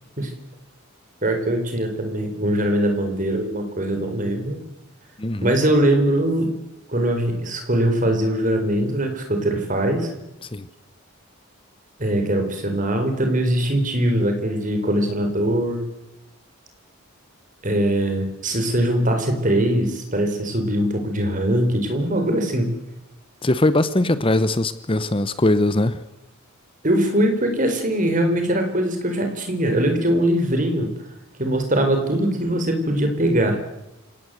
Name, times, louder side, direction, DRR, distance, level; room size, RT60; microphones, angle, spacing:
voice 1, 1.2-4.6 5.4-6.5 6.9-10.1 12.0-15.9 17.6-22.7 26.8-30.9 31.4-33.6, right 1 dB, 35° right, 5 dB, 4.6 m, -21 dB
voice 2, 5.2-5.6 10.4-10.7 23.4-26.0, left 1 dB, 25° left, 13 dB, 0.8 m, -21 dB
29.0 x 17.5 x 7.9 m, 0.89 s
head